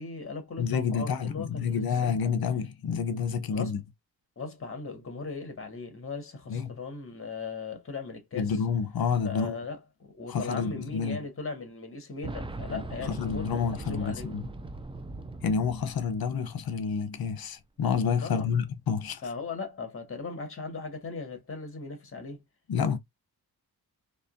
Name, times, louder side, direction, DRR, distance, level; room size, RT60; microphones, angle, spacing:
voice 1, 0.0-2.1 3.5-3.7 4.4-8.5 9.2-14.3 18.2-18.5 19.2-22.4, left 4 dB, 35° left, 1.9 m, -38 dB
voice 2, 0.6-3.8 6.5-6.8 8.3-9.6 10.3-11.2 12.7-14.5 15.4-19.2 22.7-23.0, left 6 dB, 70° left, 0.9 m, -29 dB
Boom, 12.2-17.0 17.2-17.3 18.4-18.5, right 2 dB, 15° right, 0.4 m, -40 dB
4.2 x 3.1 x 2.6 m
wide cardioid pair, 130°, 37 cm